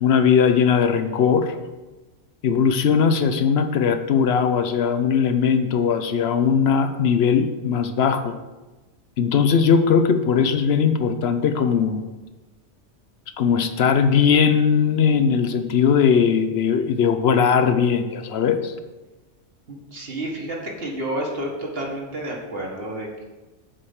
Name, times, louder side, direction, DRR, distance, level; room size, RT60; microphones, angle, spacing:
voice 1, 0.0-1.5 2.4-8.3 9.2-12.1 13.4-18.7, left 6 dB, 60° left, 9 dB, 0.9 m, -19 dB
voice 2, 19.7-23.2, right 1 dB, 55° right, -1 dB, 1.8 m, -30 dB
7.6 x 4.9 x 7.2 m, 1.2 s
omnidirectional pair, 1.3 m